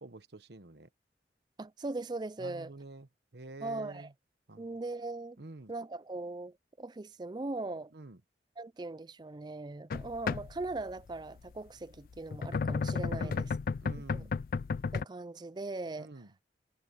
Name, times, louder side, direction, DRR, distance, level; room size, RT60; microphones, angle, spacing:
voice 1, 0.0-0.9 2.4-4.1 4.5-4.7 5.4-5.7 7.9-8.2 13.1-13.5 13.8-14.4 16.0-16.3, right 2 dB, 65° right, 1.1 m, -48 dB
voice 2, 1.6-2.7 3.6-4.1 4.6-5.4 5.7-7.9 8.6-13.5 14.1-14.2 14.9-16.1, right 2 dB, 25° right, 0.4 m, -39 dB
sound 1, 9.9-10.9 12.1-15.0, left 5 dB, 50° left, 0.3 m, -33 dB
head